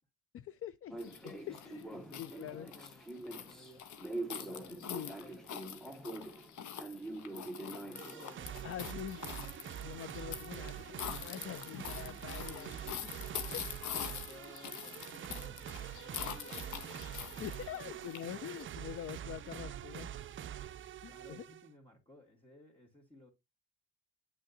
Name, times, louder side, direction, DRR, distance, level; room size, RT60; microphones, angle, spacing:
voice 1, 0.3-2.7 4.9-5.2 8.6-9.2 9.8-12.7 13.5-13.6 14.4-14.5 17.4-20.1 21.0-21.5, left 11 dB, 50° left, 0.4 m, -45 dB
sound 1, 0.9-11.7 12.0-17.2, right 2 dB, ahead, 0.9 m, -47 dB
sound 2, 1.0-18.6, left 9 dB, 75° left, 1.0 m, -45 dB
voice 2, 1.2-4.0 4.4-6.3 7.0-9.1 12.5-18.0 21.0-23.3, left 1 dB, 20° left, 2.5 m, -59 dB
sound 3, 7.9-21.7, right 10 dB, 40° right, 0.5 m, -45 dB
9.0 x 6.3 x 2.7 m
cardioid pair, 90°, 30 cm